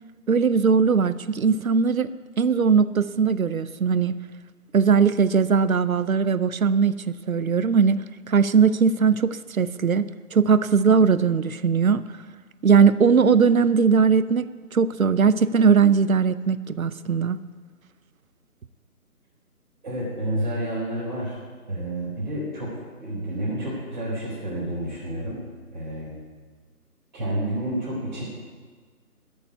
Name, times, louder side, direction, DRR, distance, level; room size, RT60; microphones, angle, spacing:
voice 1, 0.3-2.1 2.4-4.1 4.7-8.0 8.3-12.0 12.6-17.4, right 6 dB, 65° right, 15 dB, 0.7 m, -20 dB
voice 2, 19.8-21.3 21.7-22.7 23.0-25.4 25.7-26.1 27.1-28.2, right 1 dB, 30° right, -9 dB, 4.0 m, -29 dB
12.5 x 7.2 x 9.0 m, 1.5 s
figure-of-eight pair, 170°, 45 cm